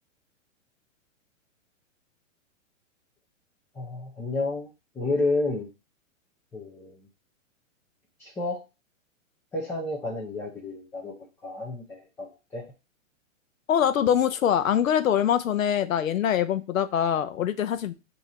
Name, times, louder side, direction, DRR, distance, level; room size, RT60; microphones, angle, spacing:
voice 1, 3.8-4.7 5.0-5.7 6.5-7.0 8.2-8.6 9.5-11.1 11.4-12.6, left 2 dB, 5° left, -3 dB, 0.5 m, -30 dB
voice 2, 13.7-17.9, left 9 dB, 85° left, 11 dB, 0.7 m, -24 dB
4.5 x 2.8 x 4.2 m, 0.28 s
hypercardioid pair, 130°, 39 cm